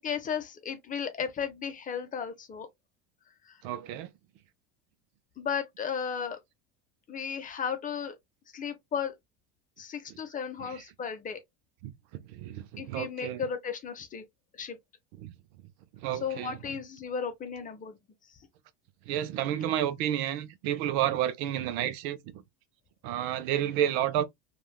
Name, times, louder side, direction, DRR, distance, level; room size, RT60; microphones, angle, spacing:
voice 1, 0.0-2.7 3.5-3.6 5.4-6.4 7.1-8.2 8.5-9.1 9.8-11.4 12.8-14.2 14.6-14.8 16.2-18.0, left 7 dB, 25° left, 0.6 m, -34 dB
voice 2, 3.6-4.1 10.1-10.2 10.6-10.8 11.8-13.4 15.2-15.3 16.0-16.6 19.1-22.4 23.0-24.2, right 11 dB, 70° right, 0.6 m, -31 dB
3.2 x 2.4 x 2.3 m
cardioid pair, 135°, 34 cm